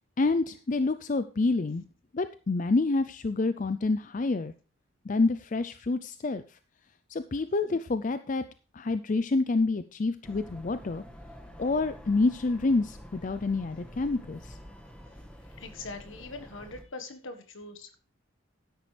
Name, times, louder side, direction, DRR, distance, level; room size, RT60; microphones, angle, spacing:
voice 1, 0.2-1.8 2.1-4.5 5.0-6.6 7.1-8.4 8.7-11.0 11.6-14.6, left 3 dB, 35° left, 11 dB, 0.4 m, -28 dB
sound 1, 10.2-16.8, equal, 5° left, 1.4 m, -48 dB
voice 2, 15.5-18.0, left 3 dB, 65° left, 6 dB, 1.5 m, -42 dB
12.5 x 10.5 x 3.3 m, 0.35 s
head